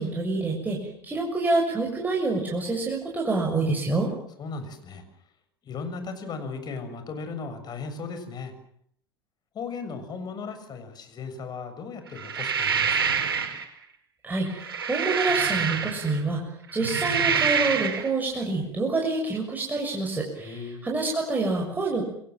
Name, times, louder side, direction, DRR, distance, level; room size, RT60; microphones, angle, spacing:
voice 1, 0.0-4.1 14.2-22.0, right 3 dB, 15° right, -1 dB, 6.8 m, -27 dB
voice 2, 4.4-5.0 5.6-8.5 9.5-13.3 20.4-20.9, left 4 dB, 35° left, 8 dB, 6.8 m, -36 dB
sound 1, 12.2-13.6 14.5-16.2 16.7-18.1, right 6 dB, 75° right, 4.9 m, -26 dB
28.5 x 22.5 x 7.7 m, 0.68 s
figure-of-eight pair, 75°, 12 cm